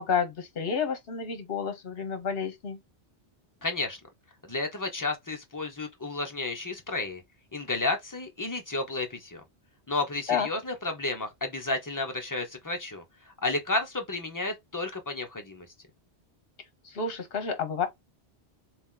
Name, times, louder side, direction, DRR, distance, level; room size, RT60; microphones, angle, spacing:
voice 1, 0.0-2.8 10.3-10.5 16.8-17.9, left 6 dB, 60° left, 1.2 m, -30 dB
voice 2, 3.6-4.0 4.4-7.2 7.5-9.4 9.9-13.0 13.4-15.7, left 2 dB, 20° left, 0.8 m, -32 dB
3.6 x 2.9 x 3.8 m
omnidirectional pair, 1.1 m